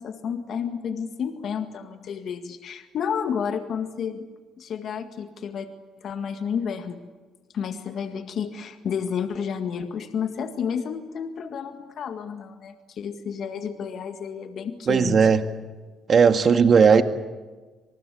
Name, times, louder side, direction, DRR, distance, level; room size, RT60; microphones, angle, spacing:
voice 1, 0.0-4.3 4.6-5.7 6.0-7.0 7.5-15.3, left 7 dB, 65° left, 7 dB, 1.9 m, -31 dB
voice 2, 14.9-15.4 16.1-17.0, right 6 dB, 50° right, 8 dB, 1.9 m, -16 dB
27.0 x 19.5 x 8.5 m, 1.3 s
supercardioid pair, 75°, 0 cm